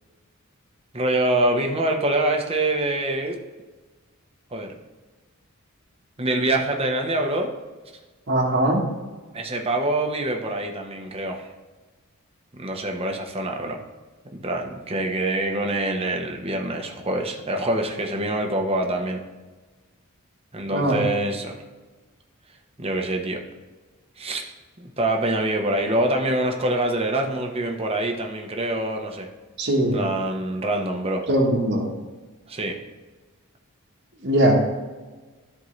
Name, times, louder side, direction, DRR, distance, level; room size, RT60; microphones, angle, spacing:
voice 1, 0.9-3.4 4.5-4.8 6.2-7.5 9.3-11.5 12.5-13.8 14.3-19.2 20.5-21.5 22.8-23.4 24.2-24.4 24.8-29.3 29.9-31.2 32.5-32.7, right 1 dB, 25° right, 2 dB, 1.0 m, -25 dB
voice 2, 8.3-8.9 20.7-21.0 29.6-30.0 31.3-31.9 34.2-34.6, right 1 dB, 55° right, -1 dB, 1.4 m, -20 dB
13.0 x 4.6 x 3.2 m, 1.3 s
head